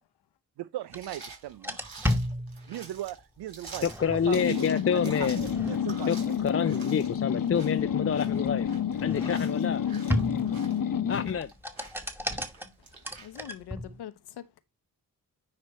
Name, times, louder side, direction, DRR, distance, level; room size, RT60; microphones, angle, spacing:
voice 1, 0.6-1.8 2.1-2.2 2.7-4.6 5.0-6.2 6.6-6.8, right 13 dB, 80° right, 0.6 m, -38 dB
sound 1, 0.9-1.0 1.5-3.0 3.6-4.5 5.2-6.1 7.3-9.7 10.1-10.7 11.3-14.0, left 1 dB, 5° right, 2.0 m, -34 dB
sound 2, 0.9-13.4, right 4 dB, 60° right, 3.7 m, -48 dB
voice 2, 3.8-5.4 6.1-8.7 9.0-9.8 11.1-11.5, left 7 dB, 35° left, 0.6 m, -28 dB
sound 3, 4.3-11.4, left 8 dB, 60° left, 0.9 m, -29 dB
voice 3, 13.2-14.6, left 10 dB, 85° left, 0.9 m, -43 dB
9.7 x 3.3 x 4.2 m
supercardioid pair, 45°, 39 cm